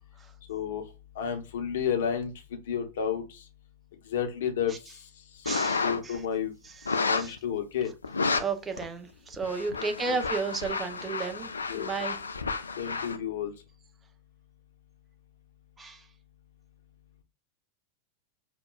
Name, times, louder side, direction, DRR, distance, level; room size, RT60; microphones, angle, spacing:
voice 1, 0.5-0.8 1.2-2.3 2.7-3.2 4.1-4.7 5.8-6.5 7.1-7.9 11.7-11.9 12.8-13.5, left 8 dB, 60° left, 0.8 m, -30 dB
voice 2, 5.4-6.2 6.6-7.3 8.3-12.2 15.8-16.0, right 4 dB, 15° right, 0.6 m, -34 dB
sound 1, 5.5-6.2 6.9-7.4 8.0-8.4 8.8-8.9 9.3-13.2, left 4 dB, 75° left, 0.4 m, -31 dB
5.3 x 2.2 x 2.3 m
figure-of-eight pair, 90°, 0 cm